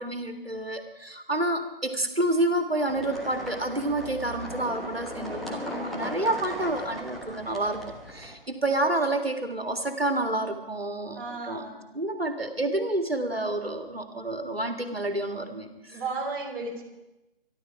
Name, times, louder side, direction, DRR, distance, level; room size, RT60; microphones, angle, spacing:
voice 1, 0.0-11.2 11.5-11.6 11.9-16.0 16.6-16.7, right 1 dB, 85° right, 6 dB, 2.0 m, -29 dB
sound 1, 2.9-8.3, left 1 dB, ahead, 1.4 m, -37 dB
voice 2, 11.1-11.8 15.9-16.8, right 3 dB, 25° right, -2 dB, 3.4 m, -34 dB
23.5 x 12.0 x 4.9 m, 0.96 s
figure-of-eight pair, 145°, 29 cm